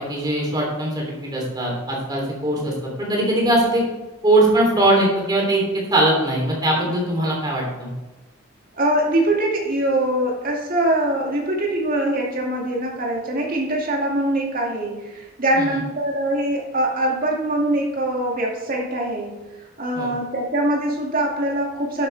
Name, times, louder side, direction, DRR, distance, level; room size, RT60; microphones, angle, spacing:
voice 1, 0.0-3.9 4.2-7.9 15.5-15.8 19.9-20.1, right 1 dB, 20° right, -3 dB, 3.3 m, -21 dB
voice 2, 8.7-19.4 19.8-22.1, right 1 dB, 40° right, -1 dB, 2.3 m, -23 dB
11.0 x 8.6 x 3.4 m, 1.1 s
head